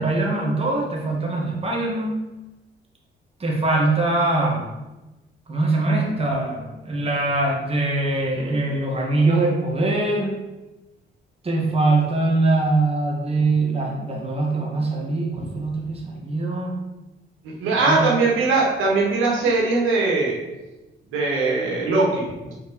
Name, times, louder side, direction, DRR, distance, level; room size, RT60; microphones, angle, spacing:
voice 1, 0.0-2.2 3.4-4.7 5.5-10.3 11.4-16.7 17.7-18.1, right 2 dB, 30° right, -2 dB, 1.9 m, -22 dB
voice 2, 17.4-20.3 21.1-22.5, right 3 dB, 90° right, -3 dB, 2.0 m, -21 dB
5.9 x 4.8 x 5.2 m, 1.1 s
cardioid pair, 90°, 20 cm